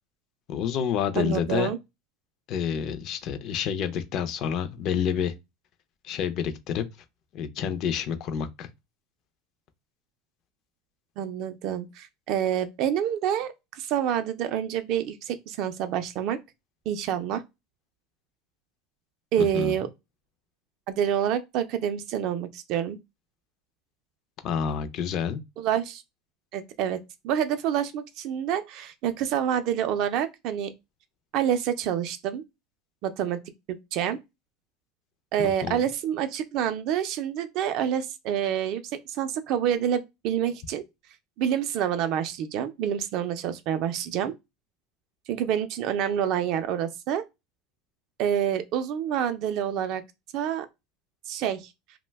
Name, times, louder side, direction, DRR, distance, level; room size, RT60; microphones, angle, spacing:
voice 1, 0.5-1.7 2.5-5.3 6.0-6.8 7.3-8.7 19.4-19.7 24.4-25.4 35.4-35.8, left 8 dB, 40° left, 0.4 m, -28 dB
voice 2, 1.2-1.8 11.2-16.4 16.9-17.4 19.3-19.9 20.9-23.0 25.6-26.0 26.5-27.0 27.2-30.7 31.3-32.4 33.0-33.4 33.9-34.2 35.3-40.8 41.4-44.3 45.3-47.2 48.2-50.0 50.3-50.7 51.3-51.7, right 9 dB, 45° right, 0.4 m, -27 dB
2.6 x 2.1 x 3.3 m
cardioid pair, 170°, 0 cm